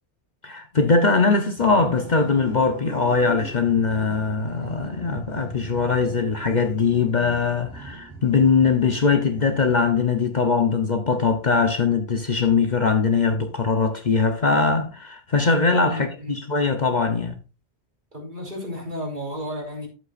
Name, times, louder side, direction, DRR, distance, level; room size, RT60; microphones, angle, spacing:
voice 1, 0.4-17.4, left 4 dB, 45° left, 1.0 m, -21 dB
sound 1, 1.5-10.1, right 4 dB, 25° left, 5.3 m, -40 dB
voice 2, 15.9-16.4 18.1-19.9, equal, 45° right, 3.5 m, -33 dB
11.5 x 8.1 x 2.5 m
omnidirectional pair, 1.1 m